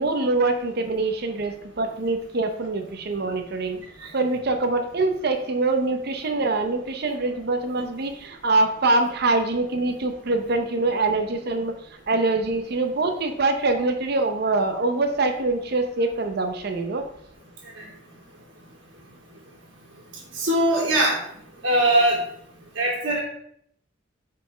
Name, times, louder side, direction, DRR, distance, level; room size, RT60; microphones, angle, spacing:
voice 1, 0.0-3.8 4.1-11.7 12.1-17.0, right 3 dB, 60° right, 6 dB, 0.7 m, -24 dB
voice 2, 20.3-21.2 21.6-22.2 22.8-23.2, right 1 dB, 85° right, -6 dB, 2.1 m, -21 dB
8.9 x 5.2 x 3.3 m, 0.69 s
head